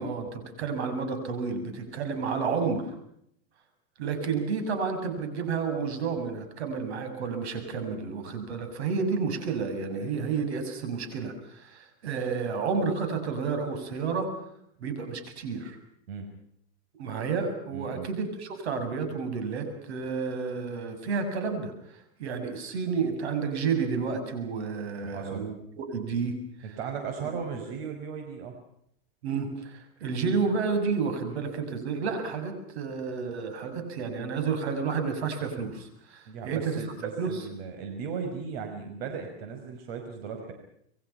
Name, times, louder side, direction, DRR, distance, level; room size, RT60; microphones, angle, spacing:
voice 1, 0.0-2.9 4.0-14.3 14.8-15.8 17.0-21.7 22.2-26.4 29.2-36.8 37.2-37.5, right 5 dB, 85° right, 7 dB, 7.3 m, -30 dB
voice 2, 17.7-18.1 25.0-25.5 26.6-28.6 31.3-31.4 36.3-40.5, right 6 dB, 65° right, 5 dB, 5.5 m, -37 dB
28.0 x 23.0 x 5.9 m, 0.72 s
supercardioid pair, 140°, 32 cm